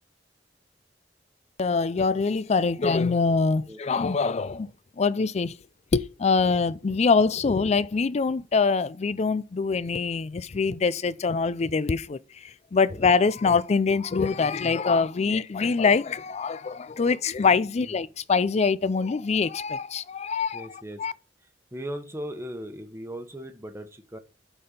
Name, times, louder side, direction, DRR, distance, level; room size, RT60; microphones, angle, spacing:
voice 1, 1.6-4.7 5.0-5.5 5.9-20.7 21.0-21.1, left 4 dB, 40° left, 0.4 m, -24 dB
voice 2, 20.5-21.0 21.4-24.2, equal, 15° right, 1.1 m, -38 dB
8.9 x 4.3 x 5.2 m
head